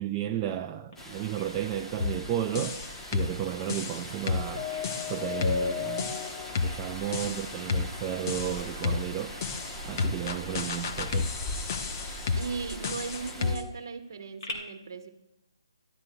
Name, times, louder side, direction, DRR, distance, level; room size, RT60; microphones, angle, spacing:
voice 1, 0.0-2.8 3.1-4.7 5.1-6.1 6.6-9.3 9.9-11.3, right 11 dB, 15° right, 0.3 m, -33 dB
Bird vocalization bird call bird song, 0.9-14.5, left 2 dB, 60° left, 2.7 m, -52 dB
sound 1, 1.0-13.6, left 1 dB, 10° left, 1.0 m, -41 dB
sound 2, 2.0-2.2 2.5-3.4 3.7-6.8 7.1-7.9 8.3-9.1 9.4-13.7, left 5 dB, 35° left, 0.9 m, -31 dB
voice 2, 12.4-15.1, right 5 dB, 50° right, 1.3 m, -37 dB
14.5 x 12.0 x 2.3 m
figure-of-eight pair, 150°, 3 cm